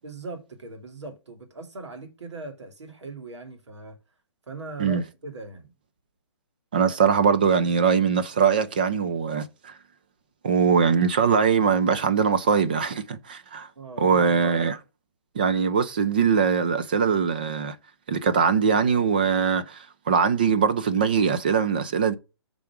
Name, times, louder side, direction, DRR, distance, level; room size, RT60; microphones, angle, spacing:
voice 1, 0.0-4.0 4.5-5.7 13.8-14.3, right 2 dB, 85° right, 2.3 m, -39 dB
voice 2, 6.7-9.7 10.4-13.7 14.0-14.8 15.4-17.8 18.1-22.1, right 6 dB, 20° right, 0.3 m, -22 dB
7.1 x 3.7 x 4.5 m
hypercardioid pair, 170°, 14 cm